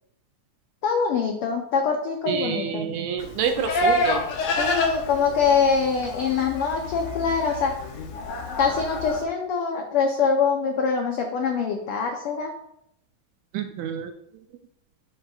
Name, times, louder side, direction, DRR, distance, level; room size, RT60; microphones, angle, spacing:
voice 1, 0.8-2.9 4.6-7.7 8.6-12.5, left 5 dB, 85° left, 2 dB, 1.2 m, -24 dB
voice 2, 2.3-4.2 13.5-14.1, right 7 dB, 80° right, 6 dB, 1.6 m, -27 dB
Livestock farm animals working animals, 3.2-9.2, left 2 dB, 70° left, 2.1 m, -28 dB
8.8 x 6.5 x 2.4 m, 0.75 s
omnidirectional pair, 3.4 m